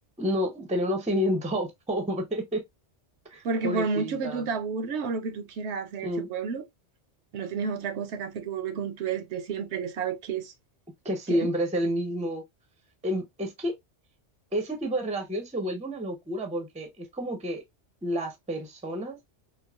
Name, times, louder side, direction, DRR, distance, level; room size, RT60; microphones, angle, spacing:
voice 1, 0.2-2.6 3.3-4.4 6.0-6.3 11.0-12.4 13.0-13.7 14.5-17.6 18.0-19.2, equal, 10° right, 0.5 m, -29 dB
voice 2, 3.4-6.6 7.3-10.5 11.3-11.5, right 5 dB, 70° right, 0.8 m, -31 dB
4.5 x 2.0 x 2.3 m
omnidirectional pair, 1.2 m